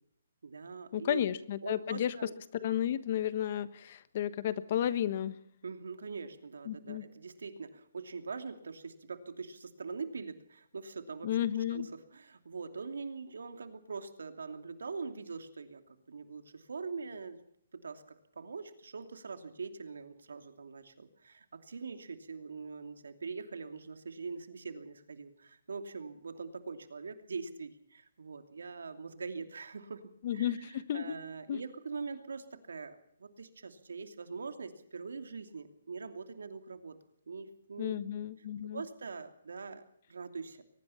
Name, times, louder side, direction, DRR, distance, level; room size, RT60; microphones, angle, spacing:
voice 1, 0.4-1.3 1.6-2.3 5.6-11.4 11.7-17.4 17.7-18.0 18.4-30.0 30.3-37.0 37.3-37.9 38.7-40.6, right 4 dB, 85° right, 7 dB, 2.8 m, -43 dB
voice 2, 0.9-2.3 2.6-5.4 6.7-7.0 11.2-11.9 30.2-31.2 31.5-31.6 37.8-38.8, left 10 dB, 40° left, 14 dB, 1.3 m, -33 dB
23.0 x 20.0 x 5.8 m, 0.67 s
hypercardioid pair, 165°, 0 cm